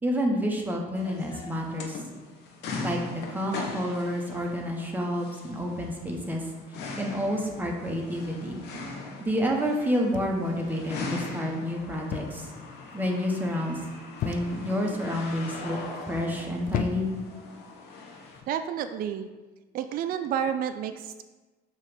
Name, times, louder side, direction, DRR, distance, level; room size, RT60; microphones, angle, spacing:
voice 1, 0.0-2.0 2.8-6.4 7.0-8.6 9.2-12.5 12.9-13.8 14.2-15.8 16.1-17.1, equal, 10° right, 0 dB, 1.1 m, -29 dB
sound 1, 1.0-18.4, left 3 dB, 80° left, 1.0 m, -40 dB
sound 2, 10.1-10.7 12.1-12.5 12.8-13.2 14.2-14.7 15.5-15.8 16.7-17.3 18.3-18.5, left 8 dB, 55° left, 0.4 m, -34 dB
voice 2, 18.5-19.3 19.7-21.2, right 9 dB, 60° right, 9 dB, 0.4 m, -30 dB
6.5 x 3.1 x 5.2 m, 1.2 s
cardioid pair, 110°, 17 cm